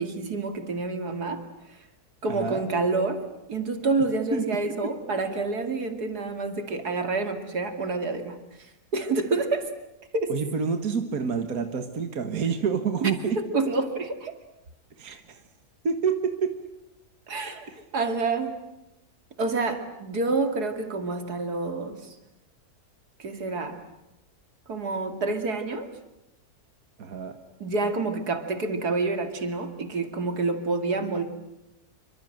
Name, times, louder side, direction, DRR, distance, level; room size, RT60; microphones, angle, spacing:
voice 1, 0.0-1.4 2.2-3.2 3.5-9.7 10.1-10.4 13.0-14.3 17.3-17.6 17.9-18.6 19.4-22.1 23.2-23.8 24.7-25.9 27.6-31.2, right 3 dB, 85° right, 7 dB, 3.0 m, -28 dB
voice 2, 2.3-2.7 4.3-4.5 10.3-13.4 15.0-15.4 15.8-16.6 17.7-17.8 27.0-27.4, right 6 dB, 65° right, 7 dB, 2.0 m, -28 dB
27.5 x 25.0 x 7.8 m, 0.90 s
omnidirectional pair, 1.6 m